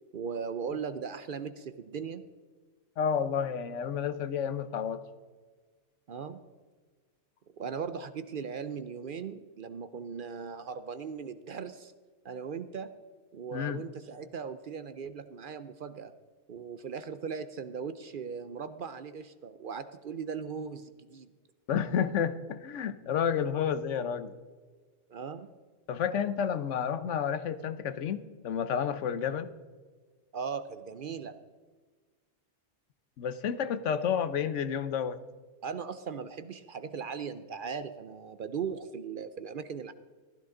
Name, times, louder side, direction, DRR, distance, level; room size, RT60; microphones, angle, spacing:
voice 1, 0.1-2.2 6.1-6.4 7.6-11.9 12.2-12.9 13.3-16.1 16.5-21.3 25.1-25.5 30.3-31.4 35.6-39.9, right 6 dB, 55° right, 12 dB, 0.6 m, -38 dB
voice 2, 3.0-5.0 13.5-13.8 21.7-24.3 25.9-29.5 33.2-35.2, left 8 dB, 80° left, 13 dB, 1.1 m, -30 dB
15.0 x 13.0 x 3.8 m, 1.4 s
omnidirectional pair, 1.2 m